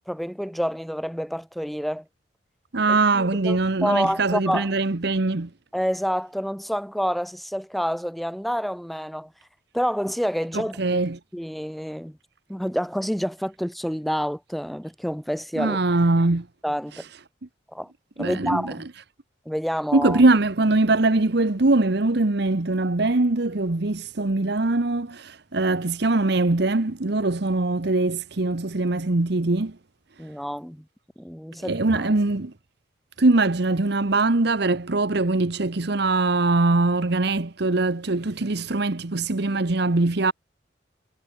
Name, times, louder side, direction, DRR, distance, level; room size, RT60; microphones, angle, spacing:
voice 1, 0.1-2.0 3.1-4.7 5.7-9.3 9.7-10.8 11.3-12.2 12.5-15.8 16.6-17.0 17.7-17.9 18.2-18.8 19.4-20.2 30.2-30.8 31.2-32.1, equal, ahead, 1.4 m, -28 dB
voice 2, 2.7-5.5 10.5-11.2 15.6-16.5 16.9-17.1 18.2-18.8 19.9-29.8 30.2-30.3 31.6-32.5 33.2-40.3, right 2 dB, 60° right, 1.0 m, -22 dB
head